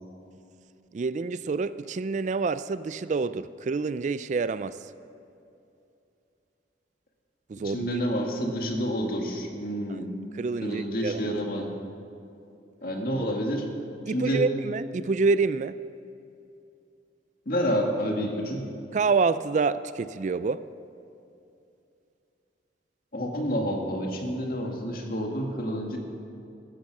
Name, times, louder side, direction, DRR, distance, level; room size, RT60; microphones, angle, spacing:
voice 1, 0.9-4.8 7.5-7.9 9.9-10.0 10.3-11.3 14.1-15.8 18.9-20.6, right 4 dB, 40° right, 15 dB, 0.3 m, -27 dB
voice 2, 7.6-10.1 10.6-11.7 12.8-13.7 14.1-14.4 17.5-18.7 23.1-26.0, equal, 50° left, 1 dB, 1.9 m, -29 dB
15.0 x 11.5 x 6.1 m, 2.7 s
head